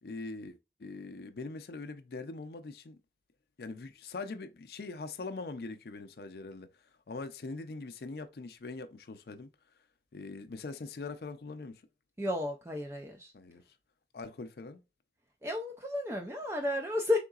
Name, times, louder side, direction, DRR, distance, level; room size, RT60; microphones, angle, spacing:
voice 1, 0.0-3.0 3.6-6.7 7.1-9.5 10.1-11.8 13.3-13.6 14.1-14.8, left 3 dB, 60° left, 0.5 m, -42 dB
voice 2, 12.2-13.3 15.4-17.2, left 2 dB, 15° right, 0.4 m, -32 dB
3.8 x 3.6 x 2.3 m
head